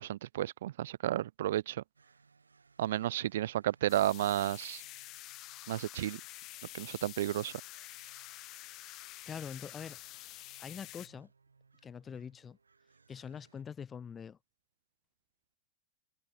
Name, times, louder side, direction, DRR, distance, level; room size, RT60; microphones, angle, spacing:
voice 1, 0.0-1.8 2.8-4.8 5.7-6.2 6.7-7.5, right 13 dB, 60° right, 0.4 m, -32 dB
sound 1, 1.9-13.6, right 4 dB, 75° right, 5.9 m, -67 dB
sound 2, 3.9-11.1, left 18 dB, 40° left, 3.7 m, -48 dB
voice 2, 9.2-10.0 10.6-11.3 11.8-12.6 13.1-14.4, left 7 dB, 20° left, 3.1 m, -44 dB
figure-of-eight pair, 90°, 0 cm